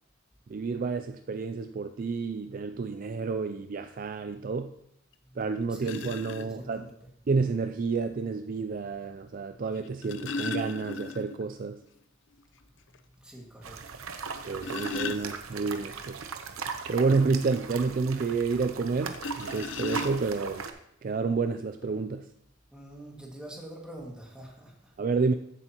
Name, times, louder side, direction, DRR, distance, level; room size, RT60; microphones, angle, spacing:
voice 1, 0.5-4.7 5.4-6.9 7.3-11.8 14.5-16.2 16.9-20.7 21.0-22.3 25.0-25.3, right 4 dB, 40° right, 9 dB, 0.3 m, -29 dB
sound 1, 5.1-5.2 5.8-6.5 7.8-7.9 9.7-11.5 11.8-11.9 12.3-12.4 12.9-13.0 14.3-15.8 19.1-20.5 21.4-21.5 21.8-22.0, left 3 dB, 60° left, 0.5 m, -36 dB
voice 2, 5.7-7.1 9.5-9.6 13.1-14.0 22.7-24.9, right 1 dB, 5° right, -2 dB, 2.0 m, -46 dB
sound 2, 13.6-20.7, right 5 dB, 85° right, 0.9 m, -39 dB
14.5 x 8.1 x 3.0 m, 0.74 s
head